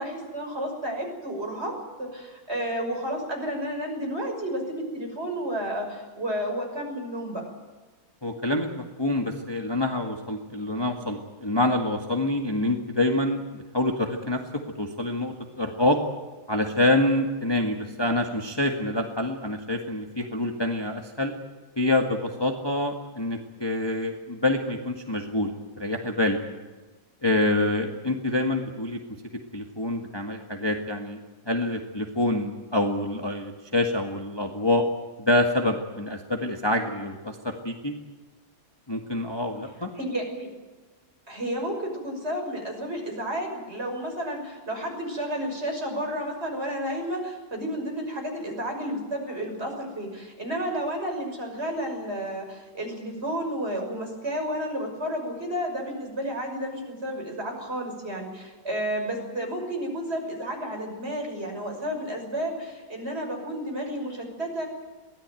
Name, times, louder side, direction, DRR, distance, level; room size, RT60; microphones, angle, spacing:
voice 1, 0.0-1.7 2.0-7.4 39.9-40.5 41.3-64.7, equal, 35° right, 1 dB, 6.3 m, -31 dB
voice 2, 8.2-14.4 14.8-16.0 16.5-21.3 21.8-26.4 27.2-29.0 29.5-31.2 31.5-34.8 35.2-37.9 38.9-39.9, left 1 dB, 15° left, 2 dB, 1.7 m, -26 dB
23.0 x 17.0 x 9.1 m, 1.3 s
omnidirectional pair, 1.9 m